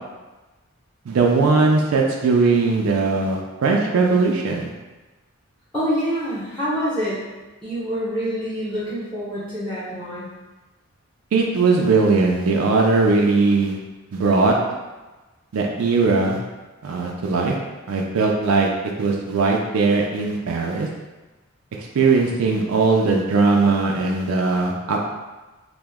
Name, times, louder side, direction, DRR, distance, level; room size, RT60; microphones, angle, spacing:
voice 1, 1.1-4.7 11.3-13.8 14.1-14.5 15.5-16.4 16.8-17.6 17.9-18.7 19.0-20.9 21.8-25.0, right 4 dB, 70° right, 0 dB, 0.4 m, -19 dB
voice 2, 5.7-7.2 7.6-10.3, equal, 5° left, -10 dB, 0.7 m, -26 dB
2.9 x 2.0 x 3.4 m, 1.2 s
head